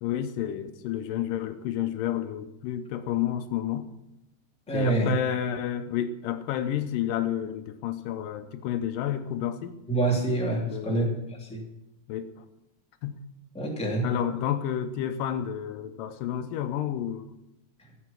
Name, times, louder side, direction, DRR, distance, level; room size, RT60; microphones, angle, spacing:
voice 1, 0.0-3.9 4.7-9.8 10.7-11.2 12.1-12.4 13.0-13.2 14.0-17.3, left 10 dB, 80° left, 9 dB, 2.3 m, -30 dB
voice 2, 4.7-5.1 9.9-11.6 13.5-14.1, right 2 dB, ahead, -3 dB, 2.2 m, -26 dB
14.5 x 7.9 x 5.9 m, 0.87 s
omnidirectional pair, 3.8 m